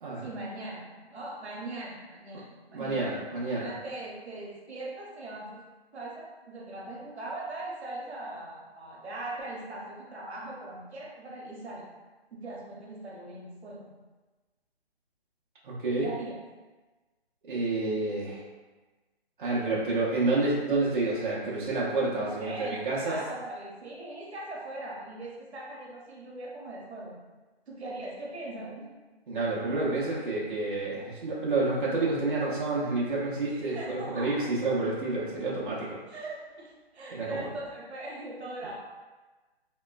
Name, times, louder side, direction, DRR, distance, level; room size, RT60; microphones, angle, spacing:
voice 1, 0.2-3.0 3.5-5.7 5.9-11.9 12.3-13.9 16.0-16.4 22.1-27.2 27.7-28.9 33.5-34.3 36.1-38.8, right 2 dB, 90° right, -4 dB, 0.9 m, -40 dB
voice 2, 2.7-3.7 15.6-16.1 17.4-18.4 19.4-23.2 29.3-36.0 37.1-37.5, right 2 dB, 55° right, -7 dB, 0.7 m, -29 dB
2.9 x 2.2 x 2.2 m, 1.2 s
hypercardioid pair, 170°, 32 cm